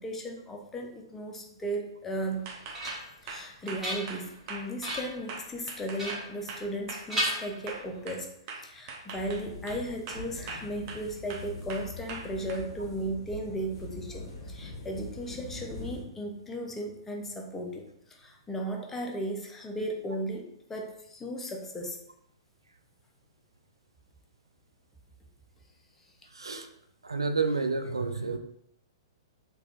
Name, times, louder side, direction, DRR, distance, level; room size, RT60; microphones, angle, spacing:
voice 1, 0.0-2.5 3.2-8.3 8.5-22.0, right 1 dB, 10° left, 1 dB, 0.5 m, -36 dB
sound 1, 2.2-3.2 3.6-4.4 4.8-5.2 6.0-6.8 7.1-8.1, right 1 dB, 10° right, 1.1 m, -35 dB
sound 2, 2.5-8.2 8.5-9.8 10.1-11.0 11.3-12.6, right 4 dB, 40° right, 0.6 m, -41 dB
sound 3, 9.1-16.0, left 2 dB, 45° left, 0.9 m, -43 dB
voice 2, 26.3-26.7 27.0-28.4, right 4 dB, 80° right, 7 dB, 0.3 m, -29 dB
3.4 x 2.8 x 2.4 m, 0.76 s
figure-of-eight pair, 110°, 3 cm